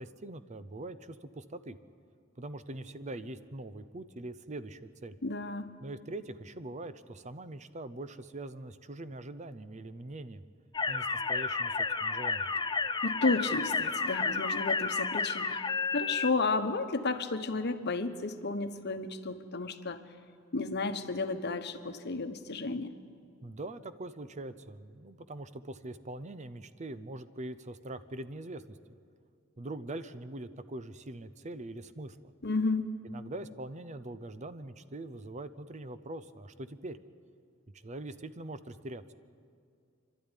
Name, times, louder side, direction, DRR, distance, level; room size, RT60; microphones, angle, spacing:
voice 1, 0.0-1.8 2.4-5.2 5.8-10.4 10.9-12.5 23.4-28.8 29.6-32.3 33.0-37.0 37.8-39.1, right 2 dB, 35° right, 13 dB, 0.7 m, -43 dB
voice 2, 5.2-5.8 13.0-15.6 15.9-20.0 20.5-22.9 32.4-32.9, left 3 dB, 55° left, 9 dB, 1.1 m, -32 dB
sound 1, 10.7-16.3, left 4 dB, 20° left, 0.6 m, -31 dB
27.0 x 12.5 x 9.9 m, 2.3 s
head